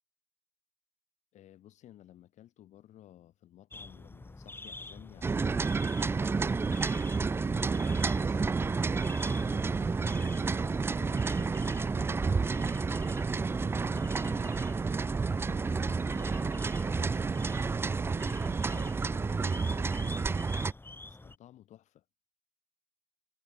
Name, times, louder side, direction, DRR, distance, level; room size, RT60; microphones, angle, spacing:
voice 1, 1.3-5.5 6.0-8.7 9.4-14.6 15.1-20.5 21.0-22.0, left 12 dB, 65° left, 6.0 m, -55 dB
sound 1, 3.7-21.4, left 2 dB, 15° left, 6.3 m, -48 dB
sound 2, 5.2-20.7, right 4 dB, 20° right, 0.3 m, -30 dB
supercardioid pair, 70°, 13 cm